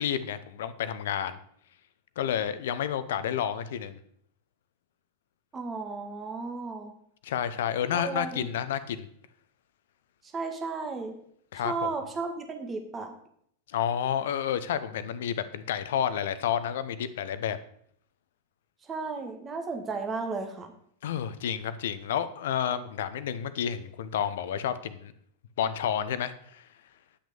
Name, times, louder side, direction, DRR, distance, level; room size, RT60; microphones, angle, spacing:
voice 1, 0.0-1.4 2.2-4.0 7.2-9.1 11.5-11.9 13.7-17.6 21.0-25.1 25.6-26.7, left 9 dB, 60° left, 14 dB, 0.8 m, -30 dB
voice 2, 5.5-6.9 7.9-8.5 10.3-11.1 11.6-13.1 18.9-20.7, right 4 dB, 20° right, 4 dB, 1.9 m, -34 dB
10.0 x 6.2 x 7.0 m, 0.66 s
figure-of-eight pair, 90°, 0 cm